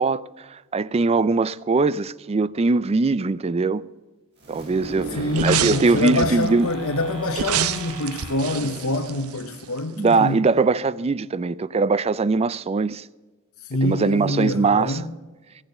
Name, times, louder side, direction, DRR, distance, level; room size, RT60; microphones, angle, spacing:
voice 1, 0.0-3.8 4.5-6.7 9.9-13.1 13.8-15.1, right 3 dB, 30° right, 0.4 m, -21 dB
sound 1, 4.4-10.1, right 2 dB, 50° right, 4.3 m, -36 dB
voice 2, 5.1-10.4 13.6-15.1, left 2 dB, 90° left, 1.1 m, -26 dB
sound 2, 5.3-6.5 7.3-9.8 10.1-10.2, right 9 dB, 85° right, 0.6 m, -27 dB
15.5 x 8.8 x 6.6 m
head